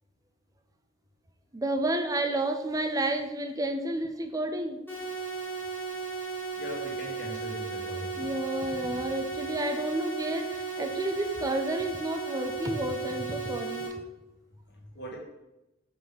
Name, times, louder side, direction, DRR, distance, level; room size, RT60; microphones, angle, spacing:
voice 1, 1.5-4.8 8.2-13.9, right 1 dB, 15° right, 7 dB, 0.4 m, -31 dB
sound 1, 4.9-13.9, right 5 dB, 10° left, 1.6 m, -35 dB
voice 2, 6.5-8.1 14.7-15.2, equal, 55° left, -2 dB, 1.7 m, -40 dB
5.3 x 4.0 x 5.5 m, 0.98 s
head